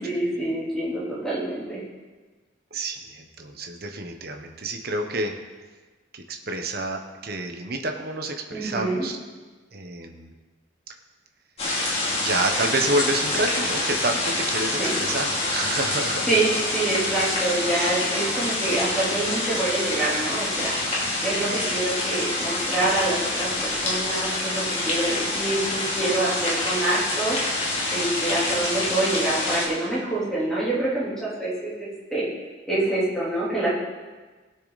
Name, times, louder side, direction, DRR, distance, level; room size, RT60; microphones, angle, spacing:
voice 1, 0.0-1.8 8.5-9.1 14.8-14.9 16.3-20.7 21.2-27.4 27.6-32.3 32.7-33.7, right 2 dB, 5° left, -9 dB, 3.6 m, -26 dB
voice 2, 2.7-5.3 6.1-9.2 9.7-10.3 12.2-16.4 17.7-18.0, right 2 dB, 50° right, 4 dB, 1.1 m, -29 dB
sound 1, 11.6-29.6, left 2 dB, 35° left, 2.7 m, -26 dB
19.0 x 6.8 x 4.1 m, 1.3 s
head